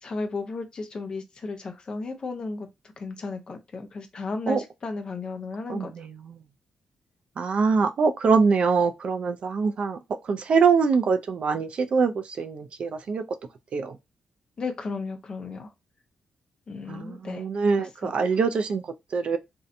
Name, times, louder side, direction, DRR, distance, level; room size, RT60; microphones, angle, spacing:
voice 1, 0.0-2.7 3.0-5.9 14.6-15.7 16.7-17.4 17.8-18.1, left 3 dB, 40° left, 0.5 m, -34 dB
voice 2, 5.7-6.4 7.4-10.0 10.2-13.2 13.7-14.0 16.9-19.4, right 5 dB, 55° right, 0.3 m, -24 dB
2.6 x 2.1 x 2.5 m
cardioid pair, 95°, 2 cm